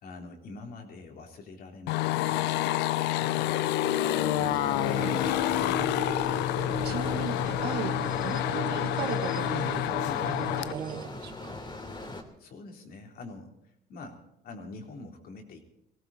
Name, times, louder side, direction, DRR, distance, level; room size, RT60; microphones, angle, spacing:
voice 1, 0.0-2.6 3.0-3.7 4.1-5.6 6.8-7.2 10.0-10.3 12.4-13.5 13.9-15.6, left 3 dB, 60° left, 2 dB, 3.7 m, -45 dB
sound 1, 1.9-10.7, left 15 dB, 85° left, 0.5 m, -28 dB
sound 2, 3.8-11.0, right 6 dB, 25° right, 0.6 m, -38 dB
sound 3, 4.4-12.2, left 2 dB, 25° left, 2.9 m, -41 dB
voice 2, 5.4-6.2 6.8-9.8 10.3-11.5, right 9 dB, 75° right, 8 dB, 1.6 m, -38 dB
19.5 x 17.0 x 4.3 m, 0.81 s
cardioid pair, 110°, 17 cm